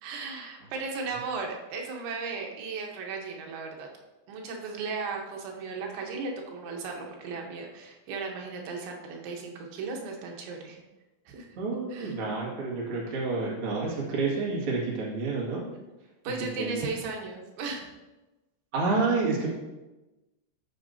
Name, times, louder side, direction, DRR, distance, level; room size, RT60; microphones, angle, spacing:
voice 1, 0.0-3.9 4.3-10.8 11.3-11.5 11.9-12.1 16.3-17.9, right 4 dB, 80° right, 0 dB, 3.5 m, -36 dB
voice 2, 11.6-15.6 16.3-16.8 18.7-19.5, right 3 dB, 45° right, -4 dB, 2.0 m, -29 dB
15.0 x 6.2 x 2.7 m, 1.1 s
omnidirectional pair, 5.3 m